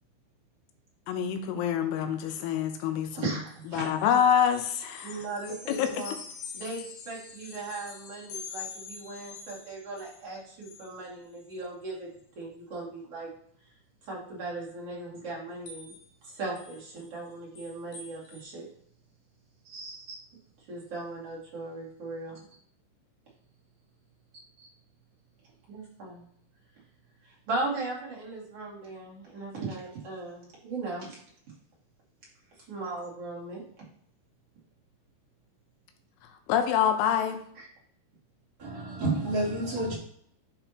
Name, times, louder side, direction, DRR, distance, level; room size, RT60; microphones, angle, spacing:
voice 1, 1.1-3.3 3.7-5.1 5.7-5.9 36.5-37.4, left 8 dB, 85° left, 6 dB, 3.4 m, -26 dB
voice 2, 3.1-3.8 5.0-6.2 6.5-12.1 12.4-13.3 14.1-15.9 16.2-18.7 19.6-20.2 20.7-22.4 24.6-24.7 25.7-26.3 27.2-31.2 32.7-33.6 37.5-37.7, right 3 dB, 40° right, -5 dB, 2.7 m, -38 dB
sound 1, 3.5-10.2 10.6-11.0 11.4-11.6 12.2-12.3 15.7-16.1 16.6-18.4, left 5 dB, 70° left, 2.6 m, -45 dB
voice 3, 38.6-39.9, right 2 dB, 25° right, -8 dB, 3.1 m, -29 dB
10.0 x 6.1 x 3.0 m, 0.66 s
omnidirectional pair, 5.5 m